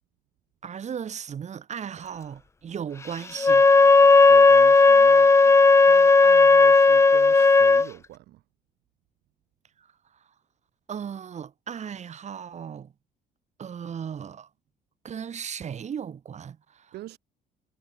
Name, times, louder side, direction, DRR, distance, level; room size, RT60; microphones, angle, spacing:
voice 1, 0.6-3.7 9.8-9.9 10.9-12.9 13.6-14.5 15.0-16.9, right 8 dB, 45° right, 4.1 m, -36 dB
Wind instrument woodwind instrument, 3.4-7.9, left 4 dB, 15° left, 0.6 m, -15 dB
voice 2, 4.3-5.4 5.8-8.4 16.9-17.2, right 16 dB, 75° right, 2.7 m, -42 dB
cardioid pair, 110°, 17 cm